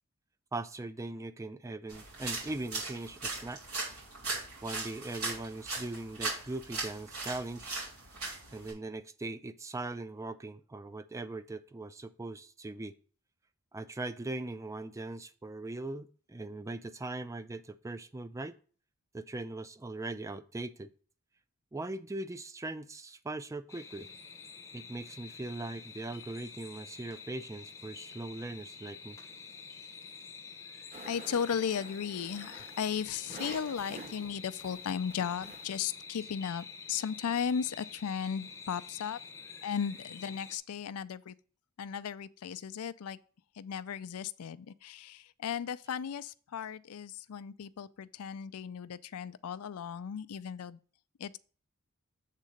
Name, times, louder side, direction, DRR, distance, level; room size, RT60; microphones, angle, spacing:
voice 1, 0.5-3.6 4.6-7.7 8.5-12.9 13.7-18.6 19.1-20.9 21.7-24.1 24.7-29.2, right 2 dB, 15° right, 0.4 m, -40 dB
sound 1, 1.9-8.7, right 3 dB, 80° right, 3.2 m, -39 dB
sound 2, 23.7-40.6, left 5 dB, 15° left, 0.8 m, -48 dB
sound 3, 30.9-36.0, right 1 dB, 30° right, 1.3 m, -49 dB
voice 2, 31.1-39.2 39.6-41.3 41.8-43.2 43.6-50.8 51.2-51.4, left 7 dB, 80° left, 0.4 m, -36 dB
7.4 x 3.8 x 6.4 m
head